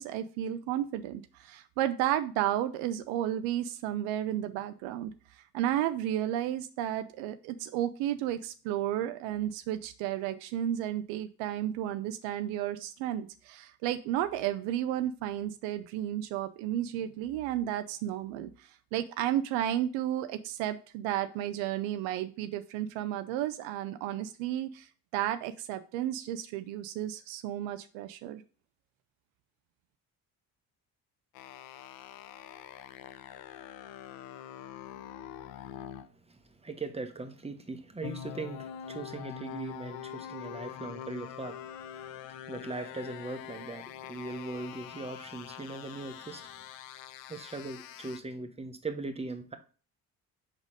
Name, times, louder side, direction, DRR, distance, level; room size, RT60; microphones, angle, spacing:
voice 1, 0.0-24.9 25.1-28.4, right 12 dB, 75° right, 0.6 m, -33 dB
sound 1, 31.4-36.1 38.0-48.2, left 10 dB, 65° left, 0.7 m, -44 dB
voice 2, 36.3-46.5 47.3-49.6, right 3 dB, 15° right, 1.1 m, -40 dB
4.8 x 4.1 x 4.9 m
hypercardioid pair, 50°, 47 cm